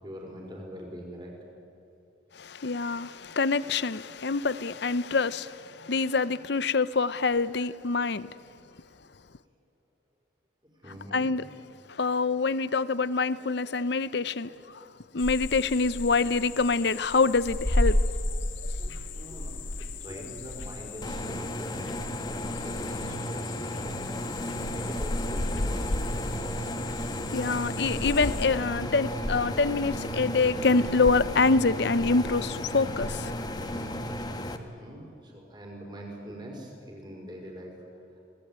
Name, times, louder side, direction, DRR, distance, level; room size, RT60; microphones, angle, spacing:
voice 1, 0.0-1.3 10.8-11.3 18.8-26.3 34.6-37.8 38.1-38.2, equal, 20° right, 5.1 m, -44 dB
voice 2, 2.3-8.3 11.1-11.5 11.9-14.9 15.1-18.0 27.3-33.4, left 4 dB, 55° left, 0.6 m, -26 dB
sound 1, 15.2-28.5, left 1 dB, 70° left, 1.6 m, -33 dB
sound 2, 21.0-34.6, equal, 20° left, 1.3 m, -34 dB
26.5 x 18.5 x 8.9 m
head